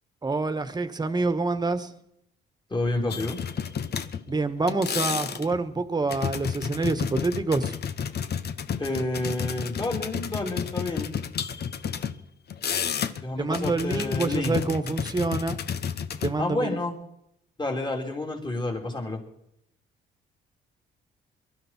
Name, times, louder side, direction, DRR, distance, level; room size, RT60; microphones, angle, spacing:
voice 1, 0.2-1.9 4.3-7.7 13.4-15.6 16.2-16.8, right 3 dB, 20° right, 10 dB, 1.6 m, -27 dB
voice 2, 2.7-3.4 8.8-11.1 13.2-14.6 16.4-16.9 17.6-19.2, left 2 dB, 25° left, 1 dB, 3.8 m, -29 dB
sound 1, 3.1-4.4 4.7-5.6 6.1-12.1 12.5-13.2 13.5-16.3, left 7 dB, 55° left, 1.1 m, -31 dB
22.5 x 12.5 x 4.6 m, 0.74 s
cardioid pair, 90°, 20 cm